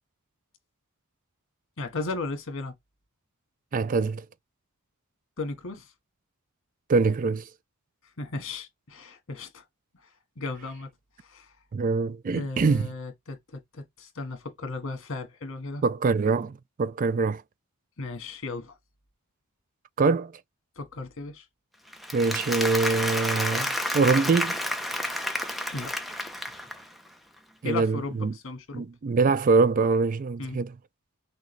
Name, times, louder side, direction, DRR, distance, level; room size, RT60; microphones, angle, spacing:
voice 1, 1.8-2.7 5.4-5.9 8.2-9.6 10.0-10.1 10.4-10.9 11.2-11.5 12.2-15.8 18.0-18.7 20.8-21.4 25.7-25.9 27.6-28.8 30.4-30.6, left 3 dB, 60° left, 1.5 m, -35 dB
voice 2, 3.7-4.2 6.9-7.5 11.7-12.9 15.8-17.4 20.0-20.3 22.1-24.6 27.6-28.3 28.7-30.7, right 4 dB, 40° right, 0.3 m, -24 dB
Applause, 21.9-27.0, left 1 dB, ahead, 0.7 m, -30 dB
6.2 x 2.3 x 3.2 m
head